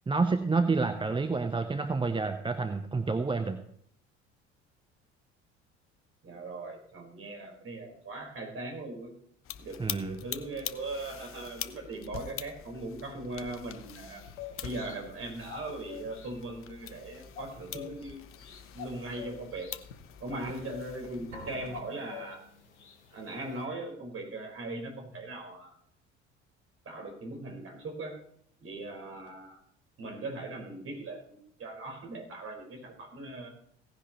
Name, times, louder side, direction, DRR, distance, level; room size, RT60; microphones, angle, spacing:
voice 1, 0.1-3.6 9.8-10.2, right 4 dB, 15° right, 8 dB, 0.8 m, -29 dB
voice 2, 6.2-9.1 9.6-14.2 14.6-19.7 20.2-22.4 23.1-25.7 26.8-28.2 28.6-29.6 30.0-33.5, right 2 dB, 40° right, 1 dB, 4.8 m, -39 dB
sound 1, 9.4-21.8, left 10 dB, 40° left, 0.7 m, -44 dB
sound 2, 13.8-23.7, left 8 dB, 75° left, 1.3 m, -49 dB
sound 3, 21.3-23.1, equal, 75° right, 4.5 m, -49 dB
17.5 x 10.5 x 3.1 m, 0.66 s
figure-of-eight pair, 55°, 35 cm